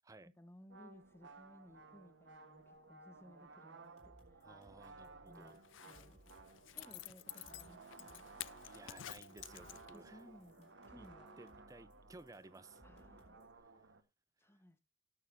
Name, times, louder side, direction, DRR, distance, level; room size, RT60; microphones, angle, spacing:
voice 1, 0.2-4.5 5.0-6.2 6.7-8.3 9.9-11.4 12.8-13.5 14.4-14.8, equal, 15° left, 1.0 m, -61 dB
sound 1, 0.7-14.0, right 3 dB, 75° right, 1.1 m, -58 dB
sound 2, 3.8-13.6, equal, 35° left, 3.6 m, -67 dB
voice 2, 4.4-5.6 8.6-10.2 11.0-11.1 11.4-12.8, right 2 dB, 15° right, 0.5 m, -57 dB
Zipper (clothing), 5.6-10.2 10.5-10.6, left 14 dB, 85° left, 0.5 m, -51 dB
18.5 x 6.6 x 2.6 m
head